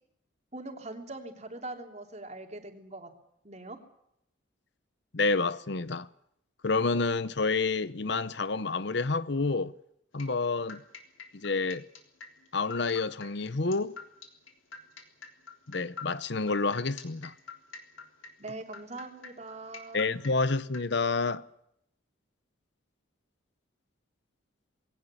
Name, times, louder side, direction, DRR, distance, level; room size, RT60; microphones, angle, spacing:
voice 1, 0.5-3.1 3.4-3.8 18.4-20.1, right 2 dB, 35° right, 3.4 m, -42 dB
voice 2, 5.1-6.1 6.6-9.7 10.1-10.8 11.3-11.8 12.5-13.9 15.7-17.3 19.9-21.4, left 3 dB, 55° left, 0.8 m, -29 dB
sound 1, 10.2-20.8, left 5 dB, 75° left, 3.6 m, -46 dB
21.5 x 18.0 x 8.6 m
head